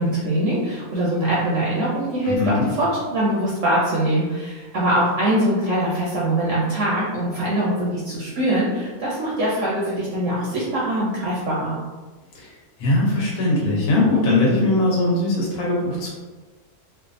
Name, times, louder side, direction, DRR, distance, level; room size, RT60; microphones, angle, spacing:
voice 1, 0.0-11.8, right 1 dB, 70° right, -6 dB, 0.8 m, -23 dB
voice 2, 2.2-2.7 12.3-12.5 12.8-16.1, left 2 dB, 75° left, -5 dB, 1.2 m, -20 dB
2.6 x 2.3 x 2.4 m, 1.3 s
omnidirectional pair, 1.6 m